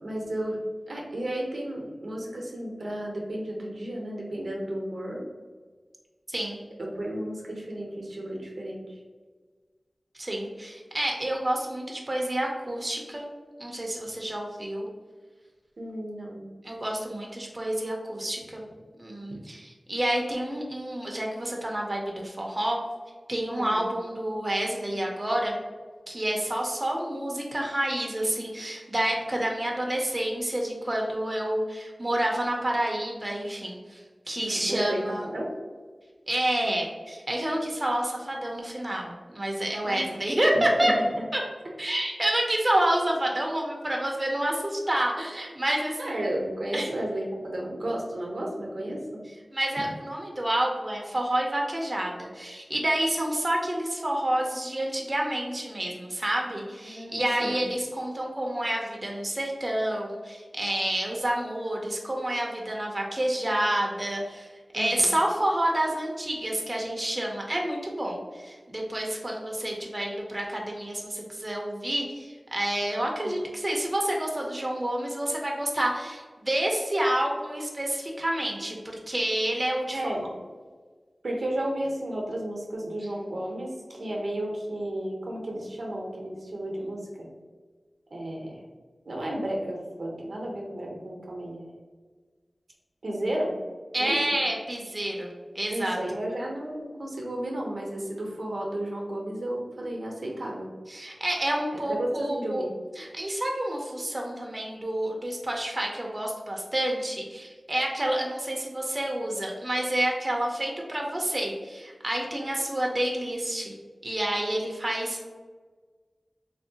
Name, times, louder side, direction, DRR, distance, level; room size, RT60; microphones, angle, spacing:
voice 1, 0.0-0.6 0.9-5.2 6.8-8.8 15.8-16.5 23.6-23.8 34.4-35.5 39.8-40.2 40.8-41.2 46.0-49.0 56.8-57.6 64.7-65.1 73.2-73.3 79.9-80.3 81.2-87.3 88.1-88.6 89.1-91.8 93.0-93.6 94.0-94.2 95.7-100.7 101.7-102.7, right 1 dB, 80° right, -2 dB, 0.7 m, -33 dB
voice 2, 6.3-6.6 10.2-13.2 13.6-14.9 16.6-18.6 19.0-22.8 23.3-25.6 26.1-34.0 34.3-35.2 36.3-40.9 41.3-41.4 41.8-46.2 46.7-46.9 49.5-80.1 93.9-95.3 95.5-96.0 100.9-102.6 103.0-113.7 114.0-115.2, right 1 dB, 35° right, 0 dB, 0.6 m, -29 dB
3.3 x 2.6 x 2.7 m, 1.4 s
cardioid pair, 40°, 0 cm